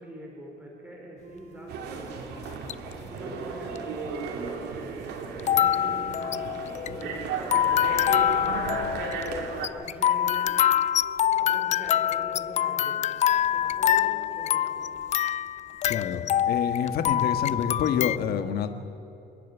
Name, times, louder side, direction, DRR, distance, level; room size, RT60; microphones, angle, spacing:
voice 1, 0.0-5.0 5.4-6.4 6.7-9.1 9.6-10.6 11.3-15.0, equal, 10° right, -2 dB, 4.9 m, -44 dB
sound 1, 1.2-17.9, right 4 dB, 60° right, 4.0 m, -52 dB
sound 2, 1.7-9.7, right 5 dB, 75° right, 2.7 m, -35 dB
sound 3, 2.4-2.9 3.8-3.9 5.4-18.2, left 11 dB, 45° left, 0.4 m, -25 dB
voice 2, 15.9-18.7, left 8 dB, 65° left, 8 dB, 1.7 m, -28 dB
28.0 x 10.5 x 9.5 m, 2.8 s
cardioid pair, 110°, 17 cm